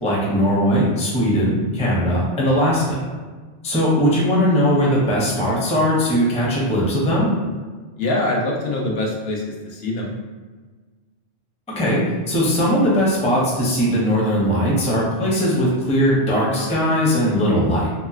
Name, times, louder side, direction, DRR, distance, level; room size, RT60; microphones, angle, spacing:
voice 1, 0.0-3.1 3.6-7.3 11.7-17.9, equal, 10° left, -5 dB, 0.4 m, -19 dB
voice 2, 8.0-10.1, left 2 dB, 70° left, -1 dB, 0.8 m, -24 dB
3.0 x 2.8 x 2.4 m, 1.4 s
omnidirectional pair, 1.1 m